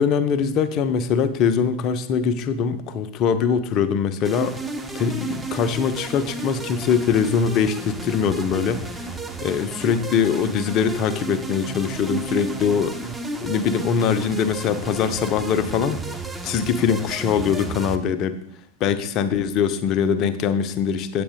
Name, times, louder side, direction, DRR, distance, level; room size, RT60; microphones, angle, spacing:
voice 1, 0.0-4.5 4.9-9.1 9.4-13.1 13.4-16.0 16.4-18.4 18.8-21.2, left 7 dB, 35° left, 11 dB, 0.8 m, -22 dB
sound 1, 4.2-18.0, right 3 dB, 5° right, 0.8 m, -32 dB
8.6 x 8.4 x 3.7 m, 0.69 s
figure-of-eight pair, 90°, 0 cm